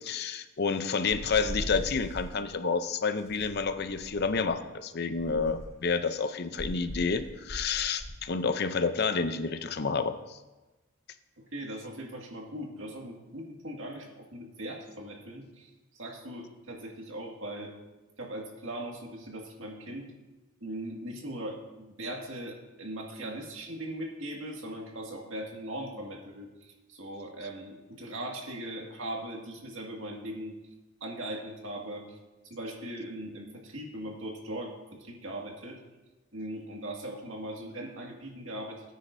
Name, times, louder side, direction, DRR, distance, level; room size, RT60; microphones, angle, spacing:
voice 1, 0.0-10.4, left 5 dB, 55° left, 10 dB, 0.6 m, -29 dB
sound 1, 1.1-2.3 3.3-4.5 5.2-5.9 6.6-8.2, equal, 80° left, 3.3 m, -40 dB
voice 2, 11.5-17.7 18.2-20.1 20.6-30.5 31.0-32.2 32.4-35.8 36.3-38.9, right 1 dB, 80° right, 0 dB, 2.0 m, -39 dB
18.0 x 9.4 x 2.7 m, 1.1 s
head